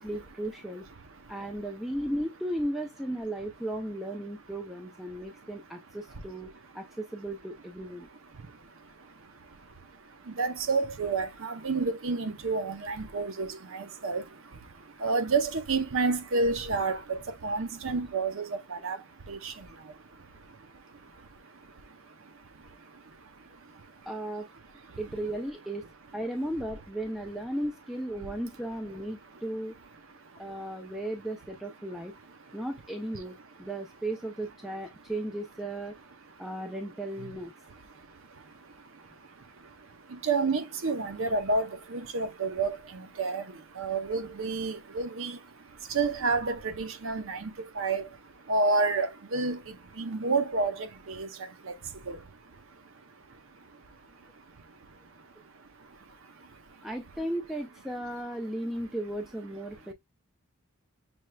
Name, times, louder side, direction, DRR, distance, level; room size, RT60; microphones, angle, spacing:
voice 1, 0.0-0.8 1.3-6.5 6.7-8.1 18.8-19.0 24.1-24.5 25.0-25.9 26.1-29.7 30.4-32.1 32.5-35.9 36.4-37.5 56.8-59.9, right 1 dB, ahead, 0.3 m, -35 dB
voice 2, 1.0-1.4 5.1-5.5 6.1-6.7 8.3-24.1 24.9-25.0 28.2-28.3 29.2-29.4 30.1-30.9 32.3-32.6 36.4-36.5 37.2-37.4 37.7-56.9 59.9-60.0, right 3 dB, 60° right, 0.6 m, -32 dB
6.2 x 3.2 x 2.2 m
head